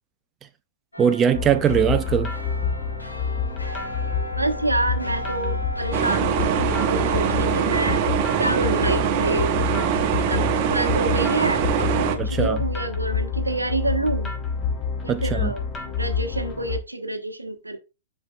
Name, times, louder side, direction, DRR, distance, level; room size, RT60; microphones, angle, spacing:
sound 1, 0.9-11.7 12.1-12.2, equal, 90° left, 2.2 m, -38 dB
voice 1, 1.0-2.3 12.2-12.6 15.1-15.5, right 8 dB, 20° right, 0.4 m, -21 dB
sound 2, 1.3-16.8, left 5 dB, 20° left, 1.4 m, -28 dB
voice 2, 4.3-8.1 8.4-9.5 10.2-14.3 15.0-15.6 16.0-17.8, right 2 dB, 85° right, 1.0 m, -27 dB
sound 3, 5.9-12.2, right 9 dB, 40° right, 0.9 m, -23 dB
10.5 x 4.5 x 2.3 m
figure-of-eight pair, 110°, 0 cm